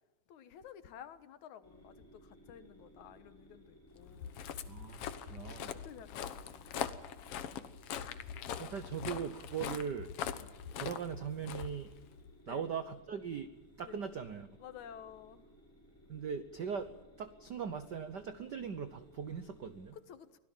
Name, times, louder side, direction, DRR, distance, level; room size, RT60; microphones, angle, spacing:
voice 1, 0.3-4.4 5.7-7.0 10.4-10.5 12.5-12.7 13.8-14.0 14.6-15.5 19.9-20.4, left 9 dB, 85° left, 11 dB, 2.7 m, -53 dB
sound 1, 1.6-19.9, equal, 5° left, 6.1 m, -61 dB
Walk footsteps, 4.0-12.3, left 9 dB, 60° left, 1.9 m, -42 dB
voice 2, 4.7-5.0 5.3-5.7 8.6-10.1 10.8-11.9 12.5-13.5 13.8-14.5 16.1-16.9 17.2-20.0, right 7 dB, 75° right, 11 dB, 0.9 m, -40 dB
24.5 x 17.0 x 7.3 m, 1.0 s
omnidirectional pair, 3.3 m